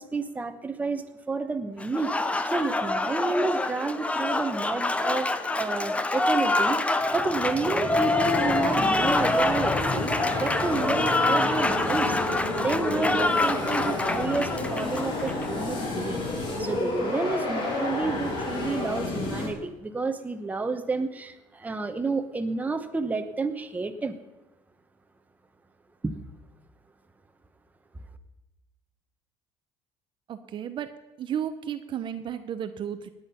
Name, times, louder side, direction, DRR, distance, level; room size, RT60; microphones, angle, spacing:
voice 1, 0.0-2.1 2.4-5.3 5.6-12.2 12.6-24.2 26.0-26.1, right 3 dB, 15° right, 7 dB, 1.0 m, -30 dB
Applause, 1.8-15.5, left 2 dB, 10° left, 0.7 m, -26 dB
Motorcycle, 7.0-15.0, left 2 dB, 80° left, 5.5 m, -36 dB
sound 1, 9.0-19.5, left 2 dB, 45° left, 3.5 m, -30 dB
voice 2, 30.3-30.9 31.2-33.1, right 9 dB, 45° right, 10 dB, 0.8 m, -33 dB
18.0 x 8.8 x 5.7 m, 1.0 s
cardioid pair, 135°, 12 cm